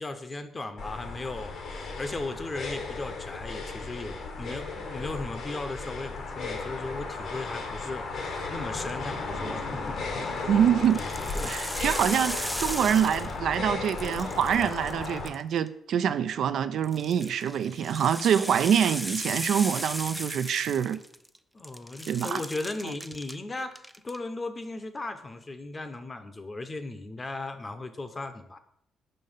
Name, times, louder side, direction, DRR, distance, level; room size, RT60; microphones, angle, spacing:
voice 1, 0.0-10.7 11.3-11.9 21.5-28.6, left 2 dB, 25° left, 9 dB, 0.8 m, -37 dB
sound 1, 0.8-15.3, left 3 dB, 65° left, 1.3 m, -35 dB
sound 2, 10.0-10.3 10.8-13.6 13.8-15.7 16.8-21.4 21.6-23.4 23.7-24.2, equal, ahead, 0.4 m, -37 dB
voice 2, 10.5-11.0 11.4-21.0 22.1-22.4, right 8 dB, 70° right, 12 dB, 0.4 m, -25 dB
5.3 x 5.3 x 5.5 m, 0.74 s
cardioid pair, 90°, 0 cm